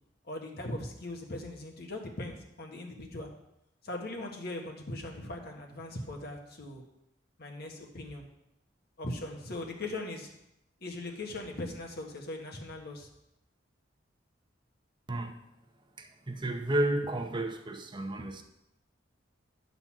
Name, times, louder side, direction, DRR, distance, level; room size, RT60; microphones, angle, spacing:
voice 1, 0.3-3.3 3.8-6.8 7.4-8.3 9.0-10.3 10.8-13.1, left 2 dB, 55° left, 1 dB, 1.5 m, -39 dB
voice 2, 16.0-18.4, right 1 dB, 25° right, 5 dB, 0.8 m, -32 dB
10.5 x 4.0 x 7.3 m, 0.86 s
head